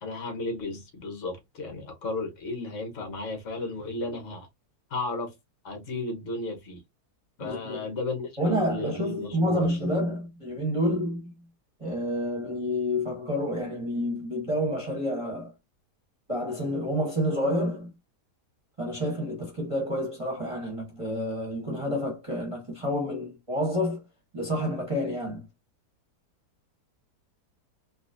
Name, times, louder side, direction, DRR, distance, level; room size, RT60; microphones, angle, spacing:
voice 1, 0.0-4.5 4.9-5.3 5.6-6.8 7.4-9.7, left 2 dB, 50° left, 1.5 m, -34 dB
voice 2, 7.4-7.9 8.4-11.3 11.8-15.5 16.3-17.9 18.8-24.0 24.3-25.5, equal, 20° right, 1.1 m, -29 dB
4.1 x 2.5 x 2.6 m
omnidirectional pair, 1.7 m